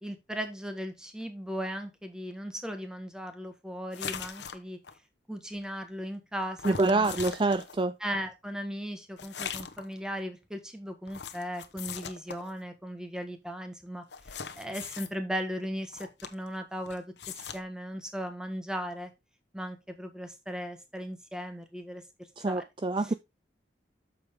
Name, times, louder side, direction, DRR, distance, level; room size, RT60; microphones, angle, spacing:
voice 1, 0.0-4.8 5.3-7.1 8.0-19.1 19.5-22.0 22.5-22.6 23.0-23.1, equal, 5° right, 1.5 m, -37 dB
sound 1, 3.9-5.0 6.6-7.8 9.2-9.9 11.1-12.5 14.1-15.1 15.9-16.6 16.9-17.6, left 7 dB, 85° left, 1.1 m, -40 dB
voice 2, 6.6-7.9 22.4-23.1, right 2 dB, 30° right, 0.4 m, -26 dB
8.4 x 6.9 x 3.7 m
head